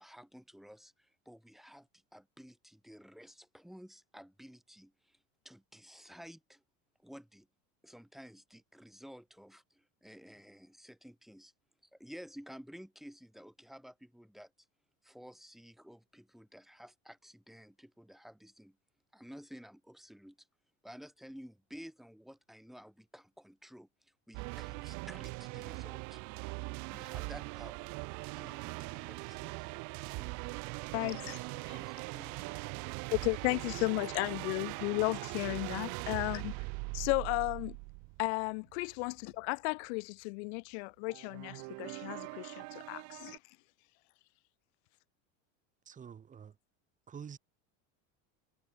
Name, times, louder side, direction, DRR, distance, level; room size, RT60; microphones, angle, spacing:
voice 1, 0.0-6.6 7.0-7.5 7.8-11.5 11.9-14.7 15.0-18.8 19.1-20.5 20.8-26.2 26.9-29.5 30.9-33.0, equal, ahead, 3.7 m, -53 dB
sound 1, 24.3-39.3 41.1-43.4, right 30 dB, 55° right, 1.3 m, -41 dB
voice 2, 30.9-31.4 33.1-36.5 36.9-37.8 38.2-39.1 39.5-43.4, left 30 dB, 65° left, 0.6 m, -34 dB
voice 3, 45.9-46.6 47.1-47.4, right 7 dB, 20° right, 4.0 m, -47 dB
cardioid pair, 160°, 36 cm